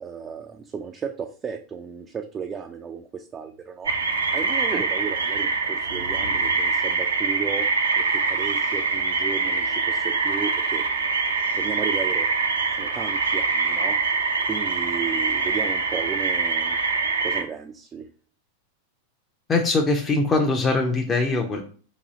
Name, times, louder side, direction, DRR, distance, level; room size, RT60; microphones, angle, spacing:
voice 1, 0.0-3.9 4.3-7.7 8.0-10.8 11.5-12.3 12.7-16.8 17.2-18.1, right 6 dB, 20° right, 3 dB, 0.4 m, -34 dB
sound 1, 3.9-17.4, right 4 dB, 70° right, 0.5 m, -24 dB
voice 2, 19.5-21.6, left 3 dB, 20° left, 1 dB, 0.6 m, -22 dB
4.0 x 2.7 x 3.9 m, 0.41 s
figure-of-eight pair, 90°, 0 cm